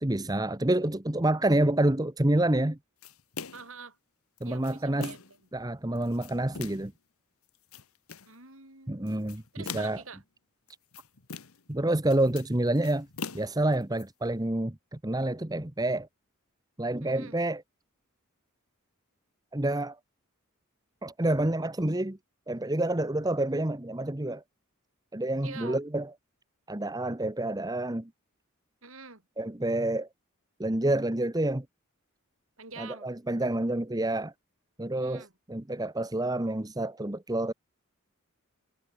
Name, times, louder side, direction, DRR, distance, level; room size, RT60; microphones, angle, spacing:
voice 1, 0.0-2.8 4.4-5.1 5.5-6.9 8.9-10.0 11.7-13.1 13.3-16.1 16.8-17.6 19.5-20.0 21.0-22.2 22.5-24.4 25.1-26.1 26.7-28.1 29.4-30.1 30.6-31.6 32.8-34.3 34.8-37.5, right 1 dB, 15° right, 1.1 m, -28 dB
sound 1, 3.0-3.8 4.4-5.4 6.0-6.9 7.5-8.3 9.1-10.1 10.7-11.7 12.0-14.0, left 5 dB, 80° left, 1.6 m, -42 dB
voice 2, 3.5-4.0 4.4-5.2 8.3-9.0 9.5-10.2 17.0-17.4 25.4-25.8 28.8-29.2 32.6-33.1 34.9-35.3, right 4 dB, 70° right, 7.3 m, -45 dB
head